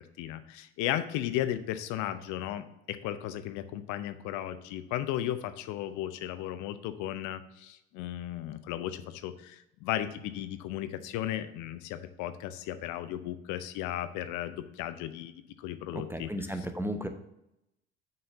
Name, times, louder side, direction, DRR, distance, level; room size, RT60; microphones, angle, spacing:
voice 1, 0.2-15.3 15.6-16.3, left 12 dB, 60° left, 11 dB, 0.7 m, -35 dB
voice 2, 15.9-17.1, equal, 5° right, 7 dB, 0.8 m, -34 dB
6.7 x 4.4 x 6.6 m, 0.83 s
hypercardioid pair, 60°, 34 cm